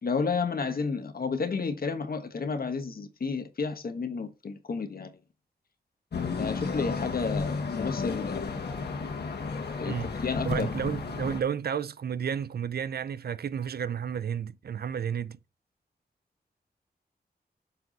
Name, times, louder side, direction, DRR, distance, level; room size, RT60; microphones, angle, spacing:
voice 1, 0.0-5.1 6.3-8.6 9.8-11.0, left 5 dB, 65° left, 1.3 m, -31 dB
sound 1, 6.1-11.4, left 4 dB, 80° left, 1.7 m, -33 dB
voice 2, 9.8-15.4, right 8 dB, 70° right, 0.5 m, -32 dB
6.9 x 4.7 x 4.0 m
wide cardioid pair, 75°, 17 cm